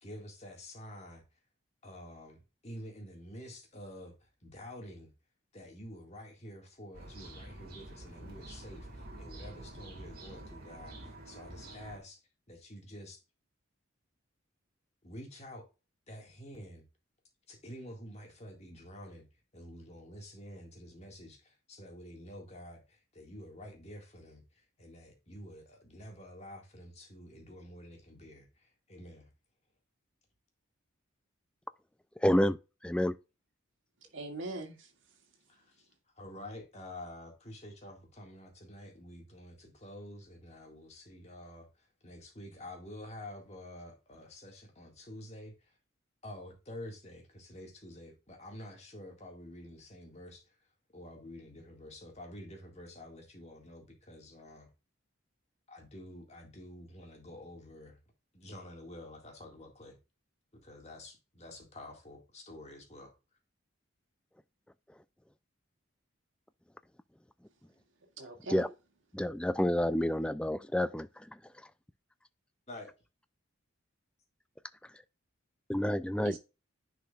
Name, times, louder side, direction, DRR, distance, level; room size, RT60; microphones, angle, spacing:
voice 1, 0.0-1.2 1.8-4.1 4.4-5.1 5.5-12.2 12.5-13.2 15.0-15.6 16.1-16.8 17.5-19.2 19.5-24.4 24.8-29.2 35.5-35.6 36.2-41.7 42.0-45.5 46.2-50.4 50.9-54.7 55.7-58.0 58.3-60.0 60.6-63.1 72.7-72.9, left 1 dB, 30° left, 1.9 m, -48 dB
sound 1, 6.9-12.0, right 1 dB, 45° right, 2.3 m, -48 dB
voice 2, 32.2-32.6 32.8-33.1 68.5-68.7 69.1-71.2 75.7-76.4, equal, 5° left, 0.3 m, -29 dB
voice 3, 34.1-34.9 68.2-68.7 76.2-76.4, right 2 dB, 65° right, 2.1 m, -41 dB
10.0 x 4.9 x 2.4 m
head